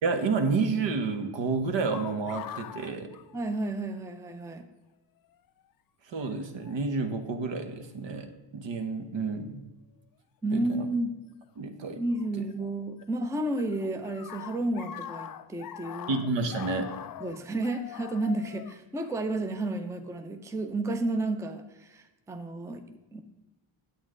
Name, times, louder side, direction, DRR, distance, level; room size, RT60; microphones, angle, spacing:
voice 1, 0.0-3.1 6.1-9.6 10.5-10.9 11.6-12.0 16.1-16.9, right 4 dB, 60° right, 6 dB, 1.2 m, -30 dB
sound 1, 1.9-4.0 4.3-4.4 5.3-5.6 6.6-6.8 7.6-8.1 10.7-10.8 12.2-13.0 13.3-19.9, left 10 dB, 45° left, 0.4 m, -43 dB
voice 2, 3.3-4.7 10.4-11.2 12.0-16.1 17.2-23.2, right 2 dB, 5° right, 7 dB, 0.6 m, -31 dB
8.6 x 8.1 x 3.7 m, 1.1 s
cardioid pair, 90°, 49 cm